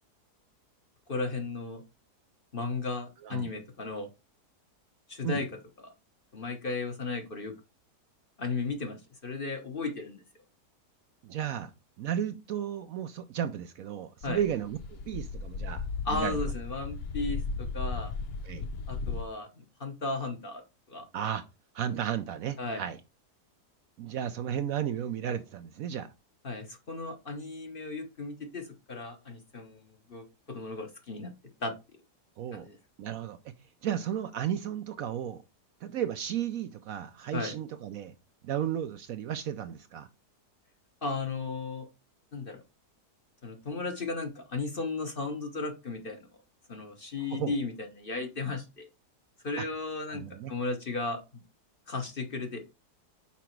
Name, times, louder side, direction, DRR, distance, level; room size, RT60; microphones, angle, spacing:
voice 1, 1.1-1.8 2.5-4.1 5.1-5.5 5.8-5.9 6.3-7.5 8.4-9.0 9.2-10.2 14.2-14.4 16.0-18.1 18.9-20.6 20.9-21.1 22.6-22.8 26.4-31.3 31.6-31.7 32.5-32.8 37.3-37.6 41.0-41.9 42.3-42.6 43.4-46.2 46.7-48.9 49.4-51.4 51.9-52.6, left 3 dB, 40° left, 1.1 m, -35 dB
voice 2, 11.2-11.7 12.0-15.8 16.1-16.4 18.4-18.7 21.1-21.4 21.7-23.0 24.0-26.1 32.4-32.7 33.0-33.4 33.8-35.4 35.8-38.1 38.4-40.1 47.3-47.5 49.6-49.7 50.1-50.5, right 9 dB, 70° right, 0.9 m, -33 dB
sound 1, 14.2-19.2, left 4 dB, 65° left, 0.6 m, -35 dB
5.8 x 5.1 x 4.5 m
omnidirectional pair, 1.7 m